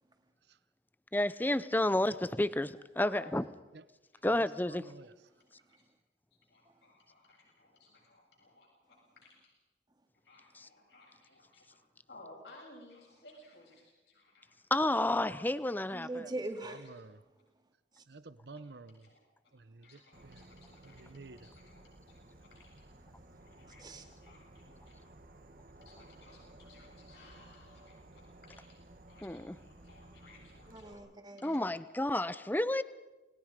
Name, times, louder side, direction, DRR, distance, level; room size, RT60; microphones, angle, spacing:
voice 1, 1.1-2.7 3.0-3.4 4.2-4.8 14.7-16.1 29.2-29.5 31.4-32.8, left 1 dB, 10° left, 15 dB, 0.6 m, -30 dB
voice 2, 3.0-3.4 4.1-4.3 5.7-5.8 6.5-9.5 10.2-11.8 12.1-14.6 16.7-17.2 19.0-19.2 19.8-22.9 23.4-25.1 25.8-28.8 29.1-31.0 31.4-31.7, left 2 dB, 75° left, -2 dB, 7.6 m, -58 dB
voice 3, 4.2-5.1 16.6-17.2 18.1-19.1 19.5-20.5 20.8-21.5, right 3 dB, 70° right, 15 dB, 0.8 m, -51 dB
voice 4, 15.9-16.9 21.1-21.2 23.8-24.0 30.7-31.7, right 2 dB, 25° right, 5 dB, 2.3 m, -42 dB
Insect / Frog, 20.1-30.9, right 1 dB, 50° right, 1.7 m, -56 dB
29.0 x 20.5 x 5.2 m, 1.1 s
head